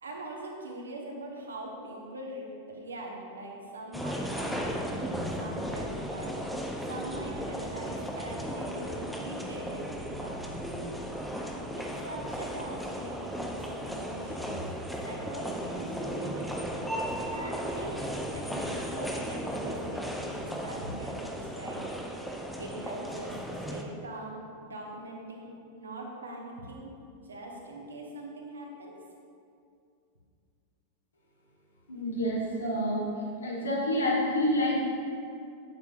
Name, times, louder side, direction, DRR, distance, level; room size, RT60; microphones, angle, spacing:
voice 1, 0.0-6.6 6.9-10.5 11.7-14.6 15.0-16.7 17.3-22.2 22.6-24.4 24.7-26.9 27.2-29.0, right 1 dB, 70° right, -1 dB, 1.2 m, -42 dB
sound 1, 3.9-23.8, equal, ahead, 0.6 m, -35 dB
voice 2, 31.9-33.0 33.4-34.8, equal, 75° left, -5 dB, 1.8 m, -28 dB
8.3 x 7.9 x 2.5 m, 2.4 s
figure-of-eight pair, 90°, 0 cm